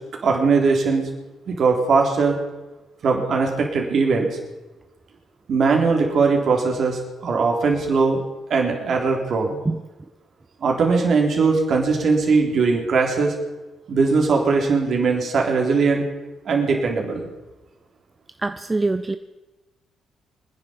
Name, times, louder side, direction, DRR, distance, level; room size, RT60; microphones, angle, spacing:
voice 1, 0.2-1.1 1.5-2.4 3.0-4.3 5.5-8.2 8.5-9.6 10.6-13.3 13.9-16.1 16.5-17.3, right 4 dB, 55° right, 1 dB, 3.7 m, -20 dB
voice 2, 18.4-19.2, right 3 dB, 25° right, 10 dB, 0.7 m, -23 dB
26.5 x 10.5 x 5.3 m, 1.1 s
hypercardioid pair, 45°, 0 cm